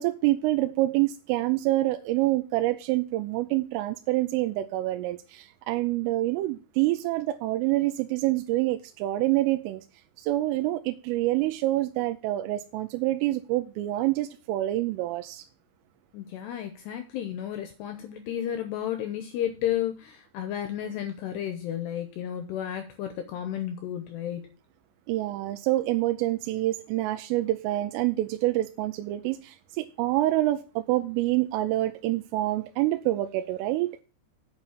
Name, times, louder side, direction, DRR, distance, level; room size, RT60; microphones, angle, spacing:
voice 1, 0.0-9.8 10.2-15.4 25.1-34.0, right 16 dB, 85° right, 3.2 m, -27 dB
voice 2, 16.1-24.5, left 10 dB, 80° left, 2.5 m, -32 dB
9.0 x 5.5 x 7.3 m
omnidirectional pair, 5.7 m